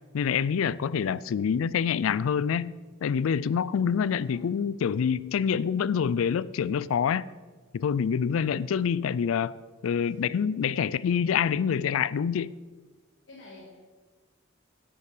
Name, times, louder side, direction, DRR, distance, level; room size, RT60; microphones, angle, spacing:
voice 1, 0.1-2.7 3.0-7.2 7.7-12.5, left 7 dB, 90° left, 0.4 m, -26 dB
voice 2, 0.9-1.3 4.1-4.6 9.9-10.2 10.6-10.8 13.3-13.8, left 1 dB, 70° left, 2.0 m, -52 dB
11.0 x 8.7 x 5.0 m
head